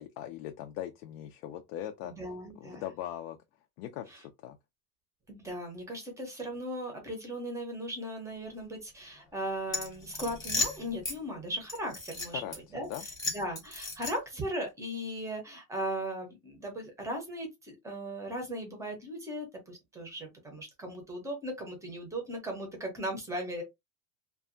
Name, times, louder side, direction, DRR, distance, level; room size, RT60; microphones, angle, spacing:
voice 1, 0.0-2.1 2.6-3.4 3.8-4.6 12.3-12.5 12.8-13.0, left 11 dB, 80° left, 0.5 m, -40 dB
voice 2, 2.0-2.8 5.3-12.4 12.7-12.9 13.3-23.6, right 1 dB, 5° right, 0.6 m, -37 dB
sound 1, 9.7-11.2 11.7-12.6 12.9-14.4, left 3 dB, 10° left, 0.9 m, -35 dB
2.6 x 2.3 x 2.5 m
cardioid pair, 160°, 44 cm